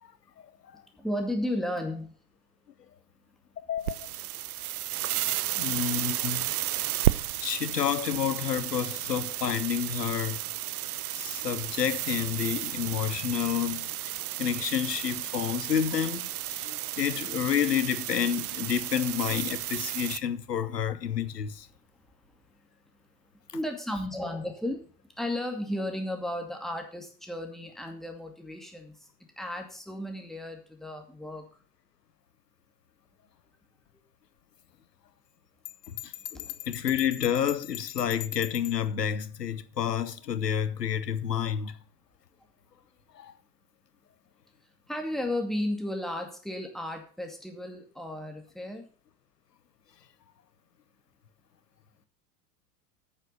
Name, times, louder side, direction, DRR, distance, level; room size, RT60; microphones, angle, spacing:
voice 1, 1.0-2.1 23.5-24.8 25.2-28.9 29.4-31.5 44.9-48.8, left 1 dB, ahead, 2.3 m, -34 dB
voice 2, 3.7-4.1 5.6-6.5 7.4-10.4 11.1-13.9 14.4-21.7 35.9-41.8 43.1-43.3, left 9 dB, 75° left, 1.0 m, -29 dB
sound 1, 3.8-20.2, right 13 dB, 65° right, 0.7 m, -33 dB
Bell, 35.7-38.8, left 15 dB, 50° left, 1.0 m, -41 dB
9.0 x 7.2 x 6.8 m
figure-of-eight pair, 85°, 48 cm